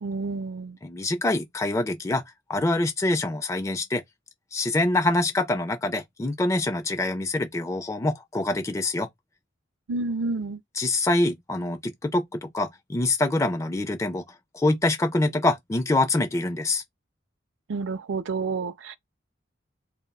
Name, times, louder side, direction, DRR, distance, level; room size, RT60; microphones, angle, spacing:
voice 1, 0.0-0.8 9.9-10.6 17.7-18.9, right 3 dB, 70° right, 0.4 m, -29 dB
voice 2, 0.8-2.2 2.5-4.0 4.5-9.1 10.7-14.2 14.5-16.8, left 2 dB, 15° left, 0.4 m, -25 dB
3.8 x 2.0 x 2.2 m
head